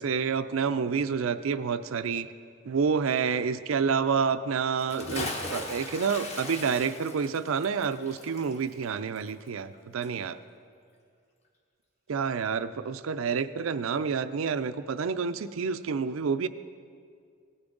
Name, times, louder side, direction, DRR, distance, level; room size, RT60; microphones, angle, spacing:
voice 1, 0.0-2.3 2.7-10.4 12.1-16.5, right 6 dB, 85° right, 12 dB, 0.4 m, -28 dB
Bathtub (filling or washing) / Splash splatter, 4.8-9.8 10.0-10.1, left 2 dB, 35° left, 1.1 m, -38 dB
17.0 x 9.6 x 3.9 m, 2.2 s
head